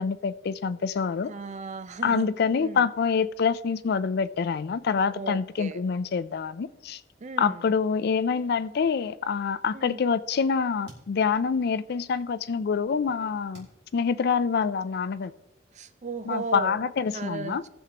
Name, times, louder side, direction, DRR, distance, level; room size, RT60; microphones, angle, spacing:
voice 1, 0.0-1.3 2.0-7.0 7.4-13.7 13.9-15.3 16.3-17.6, left 6 dB, 60° left, 0.4 m, -26 dB
voice 2, 1.3-2.3 2.6-2.8 5.1-5.8 7.2-7.7 9.7-10.0 15.7-16.8 17.1-17.7, right 4 dB, 40° right, 0.5 m, -36 dB
sound 1, 10.8-12.3 12.8-14.8, right 2 dB, 65° right, 2.7 m, -55 dB
18.5 x 7.3 x 2.9 m
head